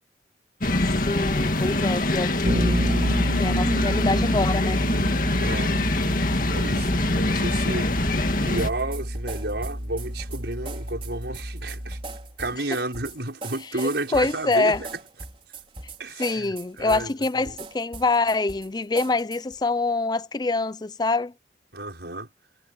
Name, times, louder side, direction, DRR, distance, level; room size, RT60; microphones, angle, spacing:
sound 1, 0.6-8.7, left 2 dB, 50° left, 2.1 m, -24 dB
voice 1, 1.0-2.8 3.4-4.8 14.1-14.8 16.2-21.3, left 3 dB, 20° left, 0.4 m, -25 dB
Bass guitar, 2.4-12.3, equal, 50° right, 4.5 m, -29 dB
voice 2, 5.4-5.8 6.4-7.9 8.4-12.0 12.4-14.9 16.0-17.1 17.4-17.6 21.7-22.3, right 2 dB, 70° right, 5.7 m, -32 dB
sound 2, 8.6-19.6, right 3 dB, 30° right, 4.8 m, -41 dB
head